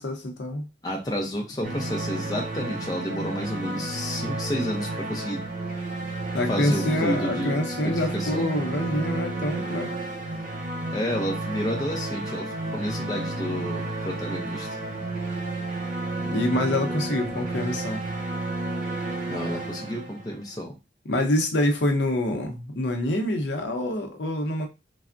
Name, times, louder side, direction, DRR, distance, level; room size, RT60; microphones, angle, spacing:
voice 1, 0.0-0.7 6.3-9.9 16.2-18.0 21.1-24.7, left 1 dB, 75° left, 4 dB, 0.6 m, -26 dB
voice 2, 0.8-5.4 6.5-7.5 7.8-8.5 10.9-14.7 19.3-20.7, equal, 20° left, 1 dB, 0.4 m, -30 dB
sound 1, 1.6-20.5, right 2 dB, 45° right, 0.5 m, -31 dB
3.3 x 2.0 x 2.4 m, 0.26 s
head